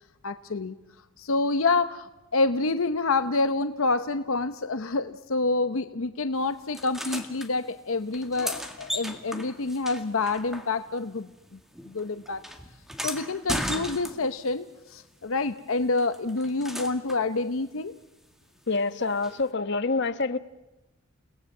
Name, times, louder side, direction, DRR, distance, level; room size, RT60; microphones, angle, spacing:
voice 1, 0.2-0.8 1.2-11.6 11.8-12.4 13.0-17.9, left 3 dB, 75° left, 10 dB, 0.8 m, -27 dB
sound 1, 6.7-7.5 8.1-11.1 11.3-14.5 16.0-17.3 19.2-19.3, equal, ahead, 2.0 m, -36 dB
voice 2, 18.7-20.4, left 3 dB, 55° left, 10 dB, 1.1 m, -26 dB
30.0 x 18.5 x 7.3 m, 1.0 s
head